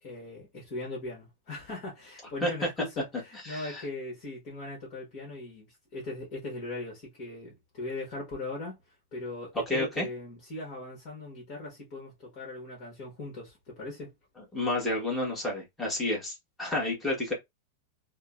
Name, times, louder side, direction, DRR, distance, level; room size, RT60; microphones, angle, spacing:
voice 1, 0.0-8.8 9.1-14.1, left 2 dB, 40° left, 1.3 m, -39 dB
voice 2, 3.4-3.8 9.7-10.1 14.5-17.3, left 2 dB, 5° left, 1.3 m, -30 dB
3.6 x 2.1 x 2.4 m
supercardioid pair, 150°, 0 cm